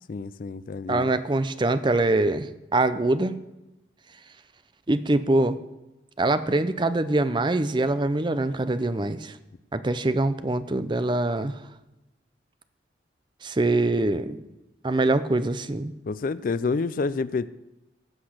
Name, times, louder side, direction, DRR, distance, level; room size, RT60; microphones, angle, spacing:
voice 1, 0.1-1.1 16.1-17.5, left 4 dB, 50° left, 16 dB, 0.4 m, -28 dB
voice 2, 0.9-3.3 4.9-5.6 6.2-9.3 9.7-11.6 13.4-14.4 14.8-15.9, right 2 dB, 25° right, 12 dB, 0.5 m, -24 dB
16.0 x 6.0 x 6.4 m, 0.99 s
head